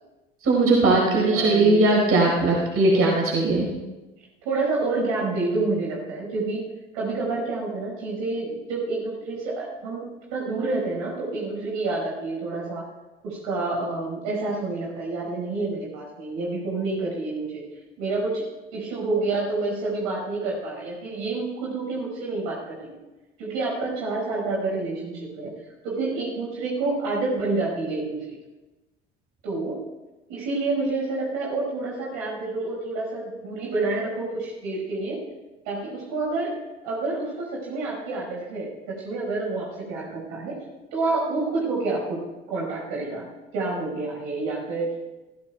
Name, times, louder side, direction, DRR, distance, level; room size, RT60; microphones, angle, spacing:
voice 1, 0.4-3.7, right 2 dB, 45° right, -2 dB, 4.8 m, -19 dB
voice 2, 1.0-1.9 2.8-3.1 4.4-6.6 6.9-10.0 10.3-12.9 13.2-17.6 18.0-18.4 18.7-23.0 23.4-25.5 25.8-28.4 29.4-29.8 30.3-35.2 35.7-36.6 36.8-40.6 40.9-43.3 43.5-44.9, right 3 dB, 65° right, -3 dB, 5.3 m, -28 dB
21.5 x 16.0 x 2.3 m, 1.1 s
figure-of-eight pair, 55°, 31 cm